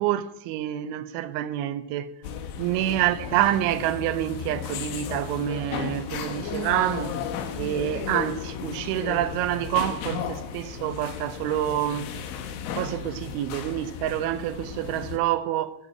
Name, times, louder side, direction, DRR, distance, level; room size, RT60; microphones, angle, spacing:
voice 1, 0.0-2.2 2.6-7.2 7.6-12.1 12.8-15.7, right 13 dB, 85° right, 3.2 m, -27 dB
sound 1, 2.2-15.2, left 7 dB, 75° left, 3.4 m, -34 dB
12.0 x 7.4 x 8.7 m
omnidirectional pair, 5.5 m